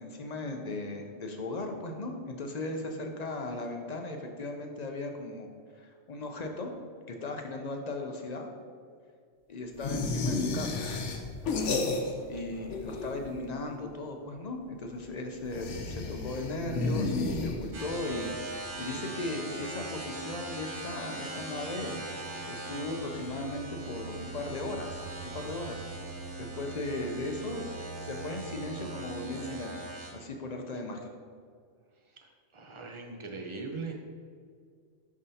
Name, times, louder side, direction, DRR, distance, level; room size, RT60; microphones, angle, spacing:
voice 1, 0.0-6.7 7.1-8.5 9.5-10.9 11.8-12.0 12.3-25.8 26.5-29.9 30.1-31.1, left 2 dB, 50° left, 3 dB, 0.5 m, -37 dB
sound 1, 9.8-12.4 12.6-13.5 15.5-18.0, left 3 dB, 75° left, 1.0 m, -32 dB
sound 2, 17.7-30.1, right 2 dB, 50° right, 1.0 m, -40 dB
voice 2, 32.5-33.9, right 4 dB, 35° right, 2 dB, 0.6 m, -40 dB
10.5 x 3.6 x 2.7 m, 2.1 s
omnidirectional pair, 1.2 m